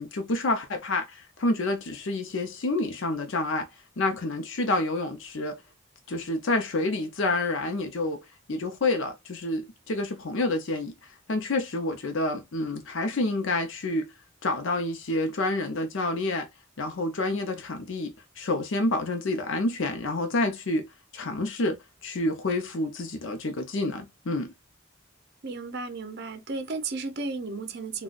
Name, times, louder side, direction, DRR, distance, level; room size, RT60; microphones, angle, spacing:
voice 1, 0.0-3.7 4.0-5.6 6.1-8.2 8.5-10.9 11.3-14.1 14.4-16.5 16.8-20.9 21.1-24.5, left 2 dB, 75° left, 0.6 m, -28 dB
voice 2, 25.4-28.0, right 3 dB, 55° right, 0.7 m, -34 dB
3.8 x 2.3 x 2.5 m
head